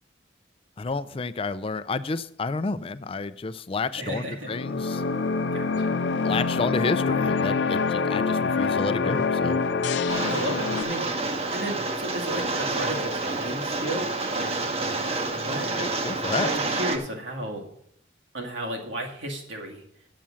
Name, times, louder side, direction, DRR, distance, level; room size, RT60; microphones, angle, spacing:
voice 1, 0.8-5.0 6.2-9.6 15.7-16.5, left 3 dB, 30° left, 15 dB, 0.4 m, -30 dB
voice 2, 4.0-4.5 5.5-5.9 10.3-11.2 11.5-14.5 15.3-15.7 16.3-17.6 18.3-19.8, right 1 dB, 85° right, 0 dB, 2.1 m, -34 dB
sound 1, 4.4-10.8, left 4 dB, 75° left, 0.6 m, -25 dB
Rain, 10.1-17.0, right 3 dB, 35° right, 0.9 m, -28 dB
7.5 x 7.0 x 7.4 m, 0.70 s
head